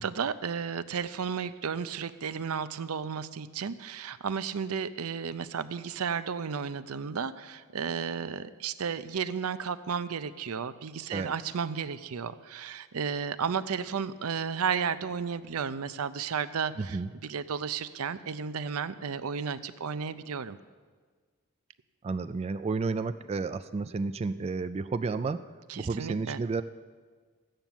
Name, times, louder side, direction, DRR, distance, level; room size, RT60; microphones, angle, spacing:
voice 1, 0.0-20.6 25.7-26.4, right 6 dB, 85° right, 13 dB, 0.6 m, -33 dB
voice 2, 16.8-17.1 22.0-25.4 25.7-26.6, right 4 dB, 30° right, 10 dB, 0.3 m, -31 dB
13.5 x 9.0 x 7.0 m, 1.5 s
head